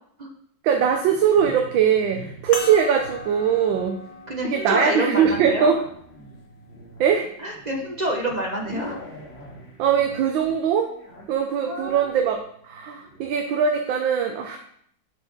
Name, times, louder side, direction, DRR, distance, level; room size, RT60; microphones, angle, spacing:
voice 1, 0.6-4.0 4.4-5.8 7.0-7.3 9.8-10.9 11.3-14.6, right 7 dB, 85° right, 4 dB, 1.5 m, -21 dB
sound 1, 0.7-13.4, equal, 35° left, 2.2 m, -44 dB
sound 2, 2.5-7.3 8.1-8.2 10.3-10.5, left 3 dB, 70° left, 1.7 m, -39 dB
voice 2, 4.3-5.7 7.4-9.0 11.7-12.1, right 1 dB, 40° right, 1 dB, 0.6 m, -27 dB
6.2 x 5.9 x 5.3 m, 0.65 s
omnidirectional pair, 2.1 m